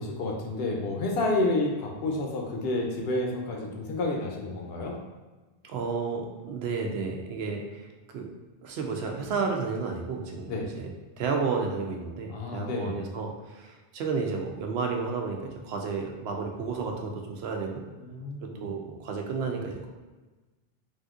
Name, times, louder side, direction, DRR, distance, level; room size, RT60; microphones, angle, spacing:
voice 1, 0.0-5.0 10.5-10.7 12.3-13.0 18.0-18.7, left 2 dB, 75° left, 0 dB, 0.8 m, -30 dB
voice 2, 5.6-7.9 8.1-8.3 8.6-10.9 11.2-17.8 18.6-19.9, right 4 dB, 85° right, 2 dB, 0.8 m, -32 dB
3.4 x 2.6 x 2.4 m, 1.2 s
omnidirectional pair, 1.0 m